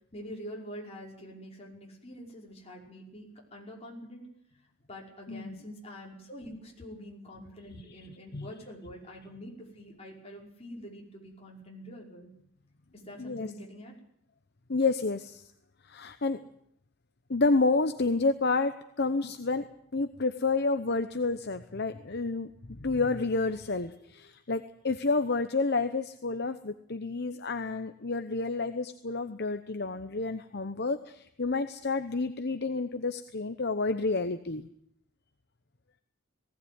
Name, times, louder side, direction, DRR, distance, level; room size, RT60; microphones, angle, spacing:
voice 1, 0.1-4.2 4.9-12.3 12.9-13.9, equal, 30° left, -1 dB, 5.5 m, -45 dB
voice 2, 5.3-5.6 8.3-8.5 13.2-13.5 14.7-15.4 15.8-16.4 17.3-19.7 19.9-34.7, left 3 dB, 50° left, 9 dB, 0.9 m, -30 dB
19.5 x 17.5 x 9.6 m, 0.71 s
head